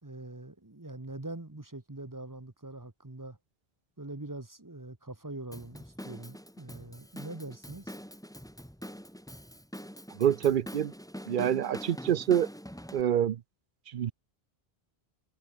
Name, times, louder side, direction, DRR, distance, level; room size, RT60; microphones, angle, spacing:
voice 1, 0.0-3.4 4.0-7.9, right 2 dB, 20° right, 1.4 m, -43 dB
Drum kit / Drum, 5.5-13.0, equal, 5° left, 2.3 m, -44 dB
voice 2, 10.2-10.9 11.3-12.5 12.9-13.4 13.9-14.1, right 10 dB, 60° right, 0.7 m, -26 dB
omnidirectional pair, 1.1 m